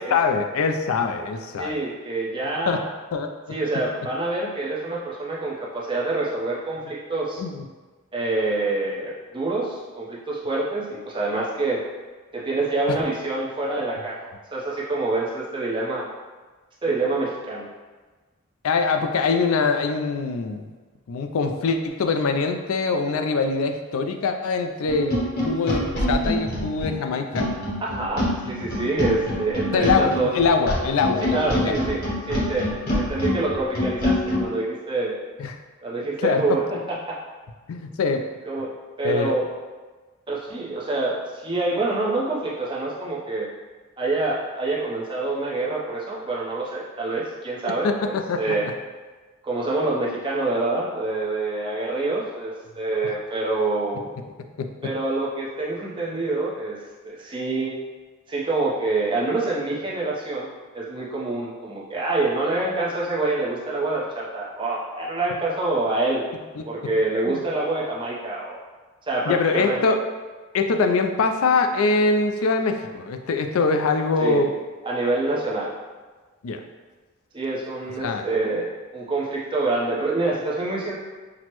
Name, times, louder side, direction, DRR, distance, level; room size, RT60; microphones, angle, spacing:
voice 1, 0.1-1.8 2.7-2.8 3.1-3.3 7.4-7.6 12.9-13.0 18.6-20.6 21.1-25.1 25.4-27.5 29.7-31.8 35.4-35.5 36.2-36.4 37.7-38.2 39.0-39.4 47.6-48.6 66.6-66.7 67.3-67.4 69.3-70.0 70.5-74.5 76.4-76.6 78.0-78.3, left 4 dB, 75° left, 5 dB, 0.4 m, -23 dB
voice 2, 1.6-2.8 3.5-7.4 8.1-11.8 12.3-14.2 14.5-16.1 16.8-17.7 27.8-30.3 31.2-32.7 32.9-35.2 35.8-37.2 38.5-38.7 39.0-39.5 40.3-43.5 44.0-48.7 49.4-54.0 54.8-56.8 57.0-57.7 58.3-60.5 60.7-66.2 66.7-68.6 69.1-69.8 74.2-74.4 74.8-75.7 77.3-81.0, right 2 dB, 25° right, -5 dB, 0.7 m, -26 dB
sound 1, 24.9-34.5, left 1 dB, 45° left, 0.9 m, -26 dB
6.0 x 2.1 x 2.9 m, 1.3 s
head